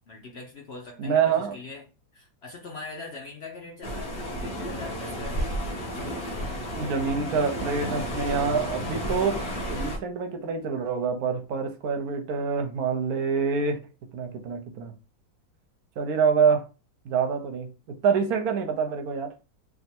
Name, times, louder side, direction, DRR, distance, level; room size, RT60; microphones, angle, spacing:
voice 1, 0.1-1.9 2.1-4.1 4.4-5.5, left 3 dB, 85° left, 0.5 m, -41 dB
voice 2, 1.0-1.6 6.0-6.2 6.7-9.4 9.7-13.8 14.1-14.9 16.0-16.7 17.0-19.3, right 6 dB, 65° right, 1.0 m, -26 dB
sound 1, 3.8-10.0, equal, 40° left, 0.9 m, -32 dB
3.5 x 2.6 x 4.3 m
omnidirectional pair, 2.1 m